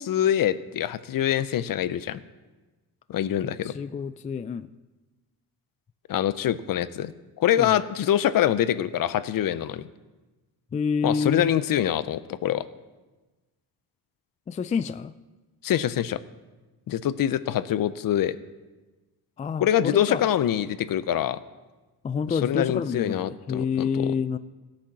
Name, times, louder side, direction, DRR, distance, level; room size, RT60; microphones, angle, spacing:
voice 1, 0.0-2.2 3.1-3.7 6.1-7.1 7.4-9.9 11.0-12.7 15.6-16.2 16.9-18.4 19.6-21.4 22.3-24.1, left 11 dB, 55° left, 15 dB, 0.7 m, -25 dB
voice 2, 3.6-4.7 7.6-7.8 10.7-11.5 14.5-15.1 19.4-20.2 22.0-24.4, left 6 dB, 20° left, 14 dB, 0.3 m, -28 dB
15.0 x 8.8 x 6.1 m, 1.2 s
cardioid pair, 100°, 41 cm